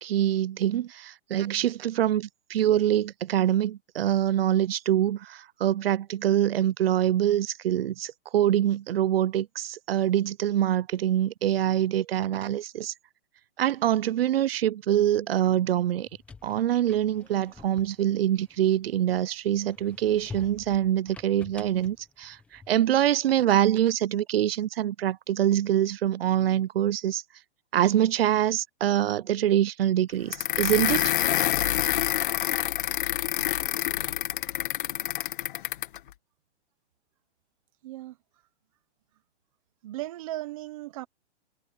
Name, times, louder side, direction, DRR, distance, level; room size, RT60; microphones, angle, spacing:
voice 1, 0.0-12.9 13.6-16.1 16.4-27.2 27.7-31.2, right 11 dB, 60° right, 0.6 m, -25 dB
sound 1, 15.9-19.1 19.6-23.0, left 4 dB, 5° left, 0.7 m, -48 dB
sound 2, 30.3-36.0, left 13 dB, 45° left, 1.8 m, -27 dB
voice 2, 37.8-38.2 39.8-41.1, right 16 dB, 30° right, 0.8 m, -36 dB
hypercardioid pair, 160°, 34 cm